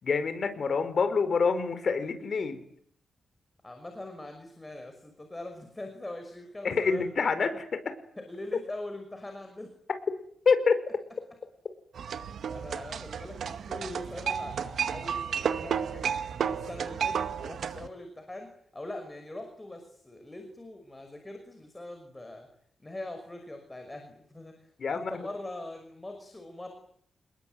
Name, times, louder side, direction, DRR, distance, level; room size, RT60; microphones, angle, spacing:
voice 1, 0.0-2.7 6.6-8.0 10.5-10.8 24.8-25.1, left 5 dB, 50° left, 10 dB, 5.2 m, -26 dB
voice 2, 3.6-7.0 8.2-9.7 12.5-22.5 22.8-24.6 24.9-26.7, left 1 dB, 15° left, 5 dB, 5.7 m, -42 dB
sound 1, 11.9-17.9, right 7 dB, 70° right, 2.0 m, -32 dB
29.5 x 21.0 x 9.5 m, 0.66 s
wide cardioid pair, 130°, 0 cm